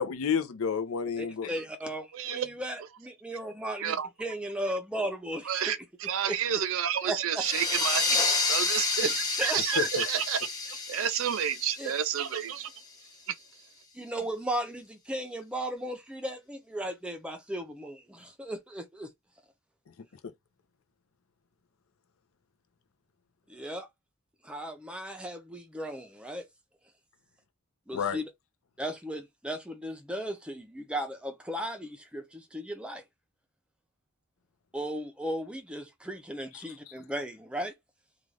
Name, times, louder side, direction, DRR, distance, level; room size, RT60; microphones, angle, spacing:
voice 1, 0.0-1.5 9.8-10.1 20.2-20.3 27.9-28.2 36.5-36.6, left 6 dB, 70° left, 0.5 m, -30 dB
voice 2, 1.2-5.8 6.3-6.4 7.0-7.4 9.0-9.1 9.4-9.6 11.8-11.9 13.9-19.1 23.5-23.9 24.4-26.5 27.9-28.3 28.8-33.0 34.7-37.7, right 1 dB, 5° right, 0.5 m, -36 dB
voice 3, 2.1-2.5 3.8-4.1 5.5-12.7 13.3-13.4, right 9 dB, 60° right, 0.4 m, -30 dB
sound 1, 7.4-12.7, left 3 dB, 15° left, 0.8 m, -30 dB
2.5 x 2.3 x 3.1 m
head